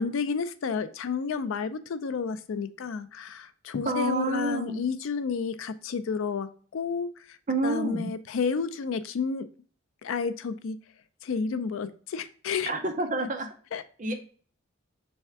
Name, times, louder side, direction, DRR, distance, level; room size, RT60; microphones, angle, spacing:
voice 1, 0.0-7.4 7.6-9.5 10.0-10.8 11.2-12.7 13.7-13.8, left 5 dB, 70° left, 12 dB, 0.4 m, -31 dB
voice 2, 3.9-4.8 7.5-8.1 12.7-13.5 14.0-14.1, right 2 dB, 35° right, 5 dB, 0.6 m, -28 dB
3.5 x 3.3 x 4.5 m, 0.43 s
head